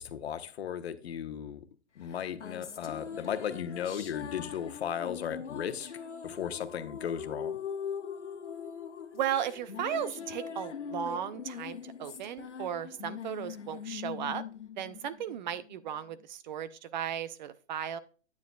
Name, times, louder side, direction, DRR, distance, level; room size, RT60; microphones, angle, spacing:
voice 1, 0.0-1.6 2.0-5.9 6.2-7.6, left 9 dB, 65° left, 1.0 m, -36 dB
sound 1, 2.1-15.8, left 7 dB, 85° left, 1.2 m, -41 dB
voice 2, 9.1-14.4 14.8-18.0, right 9 dB, 40° right, 0.6 m, -35 dB
9.6 x 9.0 x 2.3 m
hypercardioid pair, 130°, 34 cm